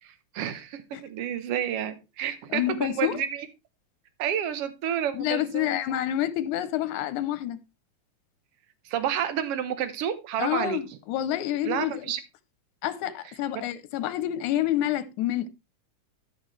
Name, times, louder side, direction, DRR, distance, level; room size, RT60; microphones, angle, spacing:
voice 1, 0.0-3.5 4.2-5.8 8.9-10.8 11.6-12.2, right 9 dB, 65° right, 1.6 m, -30 dB
voice 2, 2.5-3.2 5.1-7.6 10.4-12.1 12.8-15.5, left 12 dB, 90° left, 2.1 m, -28 dB
13.0 x 6.1 x 3.2 m
omnidirectional pair, 3.4 m